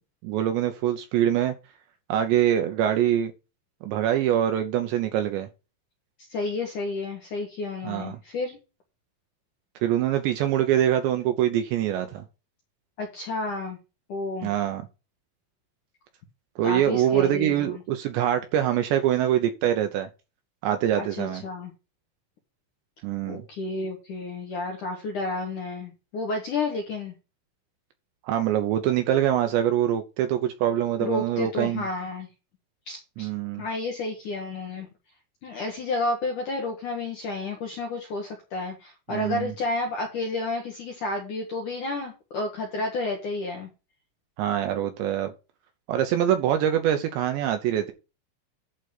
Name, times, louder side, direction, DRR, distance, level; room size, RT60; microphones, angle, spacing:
voice 1, 0.2-1.5 2.1-3.3 3.8-5.5 7.8-8.2 9.8-12.3 14.4-14.8 16.6-20.1 20.6-21.4 23.0-23.4 28.2-31.8 33.2-33.6 39.1-39.5 44.4-45.3 45.9-47.9, right 11 dB, 75° right, 2.8 m, -24 dB
voice 2, 6.3-8.6 13.0-13.8 14.1-14.5 16.6-17.7 21.0-21.7 23.3-27.1 31.0-32.3 32.9-33.3 33.6-34.9 35.4-43.7, left 2 dB, 60° left, 2.2 m, -31 dB
11.5 x 4.1 x 6.6 m
omnidirectional pair, 5.9 m